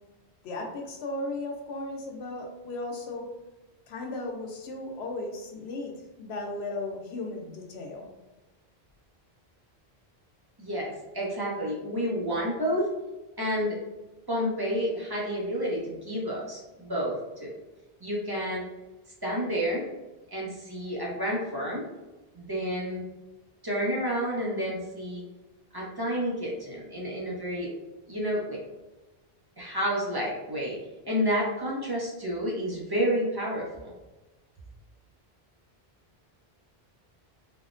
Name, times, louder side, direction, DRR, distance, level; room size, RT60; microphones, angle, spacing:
voice 1, 0.4-3.3 3.9-5.9 6.2-8.1, left 2 dB, 90° left, 1 dB, 0.9 m, -36 dB
voice 2, 10.6-12.9 13.4-13.8 14.3-17.5 18.0-18.6 19.2-19.9 20.3-21.8 22.3-23.0 23.6-25.2 25.7-27.7 28.1-28.6 29.6-30.8 31.0-33.9, equal, 25° right, -5 dB, 0.6 m, -30 dB
3.5 x 2.0 x 2.5 m, 1.1 s
omnidirectional pair, 1.0 m